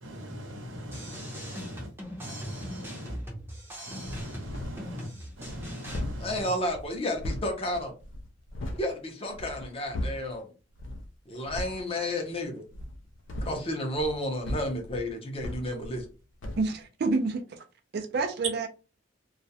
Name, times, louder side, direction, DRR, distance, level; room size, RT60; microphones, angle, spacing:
voice 1, 0.0-1.9 2.2-3.2 3.8-5.1 5.4-6.5, equal, 90° right, 0.8 m, -40 dB
sound 1, 0.9-6.0, equal, 10° right, 0.6 m, -41 dB
sound 2, 4.0-4.9 5.3-8.9 9.3-10.4 10.8-11.1 11.4-11.8 12.7-16.1 16.4-16.7, left 1 dB, 80° left, 0.4 m, -38 dB
voice 2, 6.2-7.9 8.7-10.5 11.3-12.6 13.4-16.0, left 1 dB, 30° left, 0.6 m, -31 dB
voice 3, 16.6-17.7 17.9-18.7, right 3 dB, 55° right, 0.4 m, -28 dB
2.3 x 2.1 x 2.7 m
head